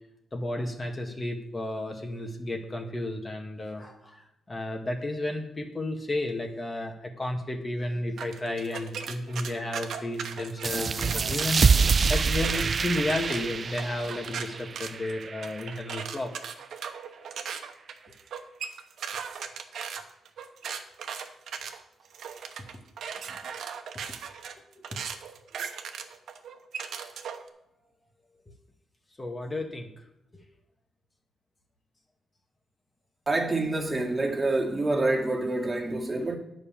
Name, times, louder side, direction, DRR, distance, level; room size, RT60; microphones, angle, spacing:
voice 1, 0.3-11.6 12.1-16.3 19.1-19.2 23.3-23.4 24.6-25.0 29.2-29.9 30.3-30.4, left 1 dB, 30° left, 1.6 m, -33 dB
sound 1, 8.2-11.5 11.9-27.5, right 7 dB, 75° right, 1.0 m, -38 dB
sound 2, 10.6-15.9, right 5 dB, 45° right, 0.3 m, -26 dB
voice 2, 33.3-36.4, right 2 dB, 25° right, 2.1 m, -27 dB
9.6 x 5.4 x 7.2 m
cardioid pair, 75°, 0 cm